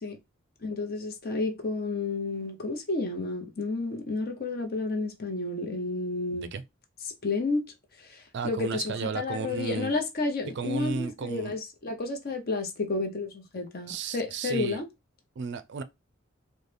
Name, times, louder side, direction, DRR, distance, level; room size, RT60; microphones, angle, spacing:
voice 1, 0.6-6.5 7.2-7.6 8.4-14.9, left 3 dB, 50° left, 0.7 m, -31 dB
voice 2, 6.3-6.6 8.3-10.0 10.6-11.6 13.9-14.8 15.4-15.8, right 5 dB, 55° right, 0.4 m, -33 dB
3.9 x 2.1 x 3.3 m
head